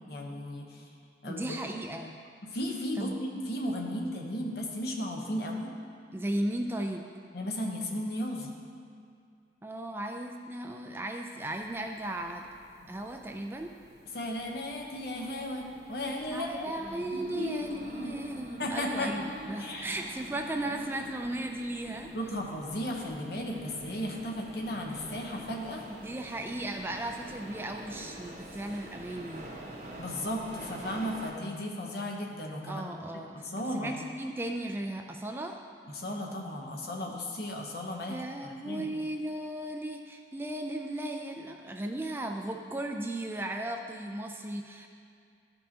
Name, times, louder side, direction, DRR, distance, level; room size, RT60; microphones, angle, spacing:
voice 1, 0.1-0.8 1.2-1.6 2.4-5.7 7.3-8.5 14.1-16.7 17.1-18.1 18.6-19.2 19.6-19.9 22.1-25.8 30.0-32.9 33.1-33.9 35.9-38.9, left 1 dB, 60° left, 0 dB, 0.9 m, -35 dB
voice 2, 1.3-2.1 3.0-3.2 6.1-7.1 9.6-12.4 12.9-13.7 16.3-22.1 26.0-29.4 32.7-35.6 38.1-44.9, right 1 dB, 10° right, 3 dB, 0.3 m, -36 dB
sound 1, 11.5-31.3, right 1 dB, 40° right, 1.1 m, -47 dB
12.0 x 5.4 x 2.8 m, 2.3 s
head